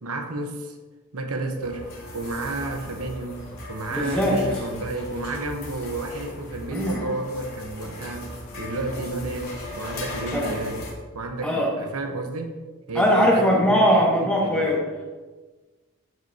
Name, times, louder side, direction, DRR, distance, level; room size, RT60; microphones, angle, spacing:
voice 1, 0.0-0.7 1.1-1.8 2.1-3.4 3.7-8.3 8.6-10.8 11.1-12.5 12.9-13.6 13.9-14.7, right 2 dB, 85° right, 4 dB, 1.0 m, -31 dB
sound 1, 1.6-10.9, left 2 dB, 70° left, 3.2 m, -38 dB
voice 2, 3.9-4.4 6.7-7.0 10.3-10.5 11.4-11.7 12.9-15.0, equal, 5° left, -4 dB, 1.8 m, -21 dB
14.0 x 6.4 x 2.8 m, 1.3 s
head